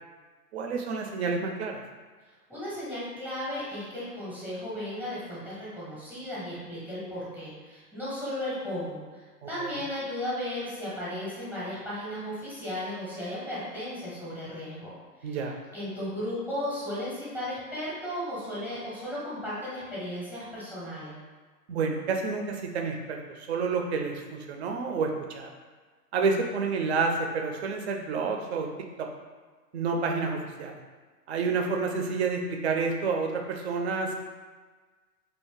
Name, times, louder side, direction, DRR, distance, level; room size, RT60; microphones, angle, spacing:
voice 1, 0.5-1.8 9.6-9.7 15.2-15.6 21.7-25.5 26.1-28.7 29.0-29.1 29.7-30.8 31.3-34.1, right 4 dB, 45° right, 3 dB, 0.4 m, -29 dB
voice 2, 2.5-14.9 15.2-15.4 15.7-21.2, left 1 dB, 5° left, -10 dB, 0.7 m, -35 dB
2.6 x 2.4 x 3.6 m, 1.4 s
hypercardioid pair, 135°, 48 cm